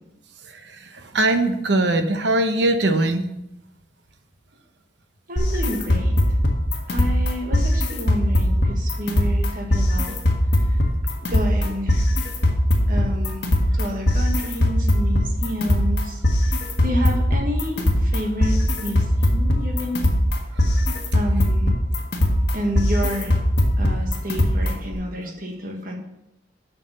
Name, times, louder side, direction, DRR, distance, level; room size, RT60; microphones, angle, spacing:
voice 1, 1.1-3.3, right 2 dB, 70° right, 7 dB, 0.9 m, -20 dB
voice 2, 5.3-6.4 6.9-10.1 10.6-10.8 11.2-12.1 12.9-20.0 21.1-21.7 22.5-23.4 23.8-25.9, equal, 45° right, 0 dB, 1.7 m, -30 dB
sound 1, 5.4-24.9, left 1 dB, 60° left, 1.6 m, -21 dB
7.8 x 5.9 x 6.7 m, 0.88 s
head